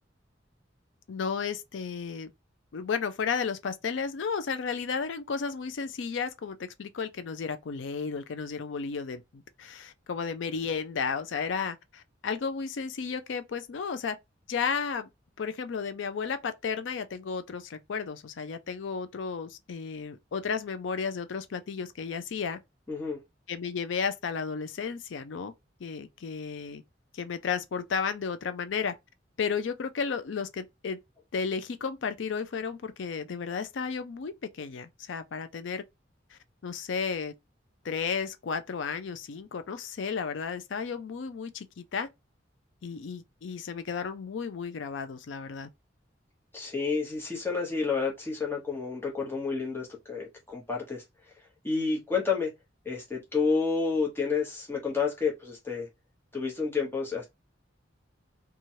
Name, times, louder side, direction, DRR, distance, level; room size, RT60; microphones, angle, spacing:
voice 1, 1.1-2.3 2.7-14.2 14.5-15.1 15.4-22.6 23.5-25.5 25.8-26.8 27.1-29.0 29.4-31.0 31.3-35.8 36.3-37.3 37.8-42.1 42.8-45.7, left 5 dB, 75° left, 0.4 m, -33 dB
voice 2, 22.9-23.2 46.5-51.0 51.6-52.5 52.8-55.9 56.3-57.2, left 4 dB, 10° left, 1.0 m, -30 dB
3.0 x 2.3 x 2.7 m
head